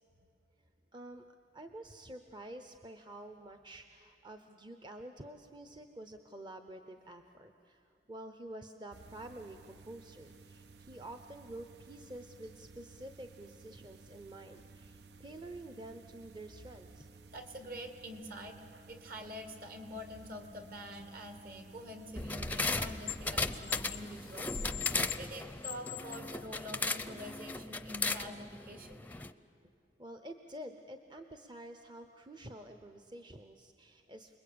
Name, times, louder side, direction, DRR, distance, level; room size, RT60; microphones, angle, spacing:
voice 1, 0.9-1.2 1.5-17.1 30.0-34.4, right 1 dB, 25° right, 7 dB, 0.8 m, -49 dB
sound 1, 8.9-25.0, right 3 dB, 75° right, 0.7 m, -56 dB
voice 2, 17.3-18.6 18.9-29.0, equal, 55° right, 6 dB, 2.2 m, -46 dB
sound 2, 22.0-23.2 23.5-26.3 27.0-27.1, left 16 dB, 55° left, 0.5 m, -43 dB
sound 3, 22.1-29.3, left 3 dB, 10° left, 0.6 m, -37 dB
29.5 x 21.0 x 8.7 m, 2.5 s
head